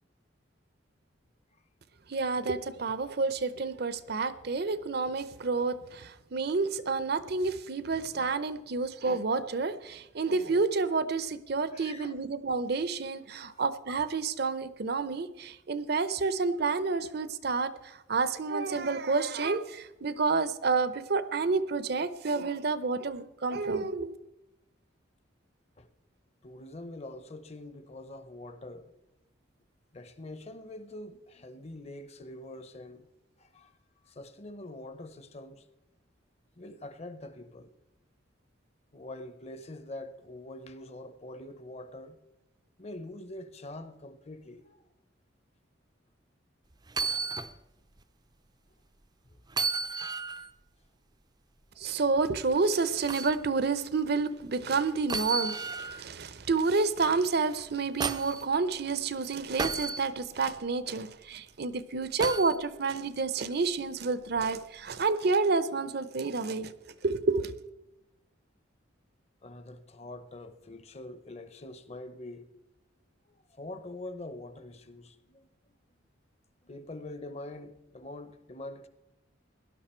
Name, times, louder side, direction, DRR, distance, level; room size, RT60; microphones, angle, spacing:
voice 1, 2.1-24.1 51.8-66.7 67.0-67.6, right 4 dB, 55° right, 0.7 m, -29 dB
voice 2, 11.7-12.2 13.3-13.6 25.8-25.9 26.4-28.9 29.9-33.1 33.4-33.7 34.0-35.6 36.6-37.7 38.9-42.2 42.8-44.8 49.2-49.4 69.4-72.5 73.5-75.5 76.6-78.9, left 2 dB, 30° left, 0.8 m, -44 dB
sound 1, 46.9-47.5 48.0-48.1 49.5-50.5 53.1-53.4 55.1-56.0 57.5-58.4 59.6-60.0 62.2-62.6 64.3-64.5, right 4 dB, 20° right, 0.5 m, -33 dB
17.5 x 11.5 x 4.4 m
head